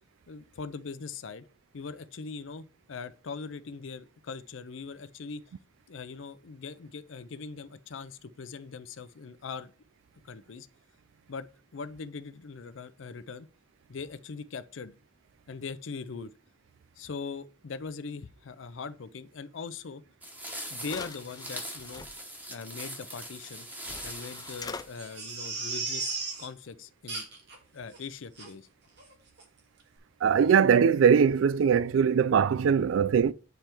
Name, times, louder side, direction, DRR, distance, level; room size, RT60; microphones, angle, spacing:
voice 1, 0.3-1.5 1.7-5.4 5.9-9.7 10.2-10.7 11.3-11.5 11.7-13.5 13.9-14.9 15.5-16.3 17.0-20.0 20.7-22.0 22.5-23.7 24.0-27.2 27.7-28.7, left 5 dB, 80° left, 0.5 m, -41 dB
sound 1, 20.2-25.5, right 1 dB, 10° right, 1.0 m, -42 dB
sound 2, 20.3-20.4 20.8-22.1 23.4-23.5 23.8-24.9, left 4 dB, 20° left, 0.4 m, -42 dB
Crying sobbing, 25.0-26.5 27.1-27.6 27.9-28.0 28.4-28.5 29.0-29.1 29.4-29.5, right 4 dB, 60° right, 1.7 m, -35 dB
voice 2, 30.2-33.3, right 7 dB, 80° right, 0.3 m, -21 dB
9.1 x 3.4 x 4.4 m
head